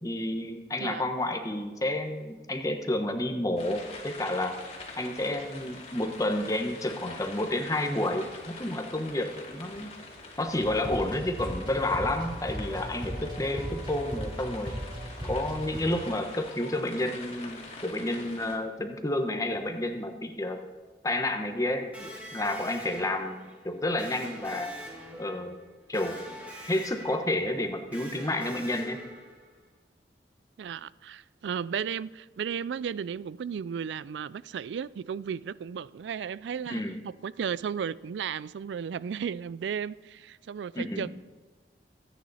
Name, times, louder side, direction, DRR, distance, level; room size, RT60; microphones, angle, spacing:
voice 1, 0.0-4.6 4.9-9.9 10.4-14.8 15.2-20.6 21.0-24.7 25.2-25.5 25.9-26.2 26.7-29.0 36.7-37.0 40.7-41.1, left 1 dB, 20° left, 1.1 m, -30 dB
sound 1, 3.6-18.6, left 3 dB, 35° left, 2.3 m, -45 dB
sound 2, 10.6-15.8, equal, 25° right, 4.3 m, -37 dB
Electric guitar, 21.9-29.6, equal, 10° right, 2.7 m, -45 dB
voice 2, 30.6-41.1, right 7 dB, 85° right, 0.3 m, -34 dB
24.5 x 9.3 x 4.2 m
head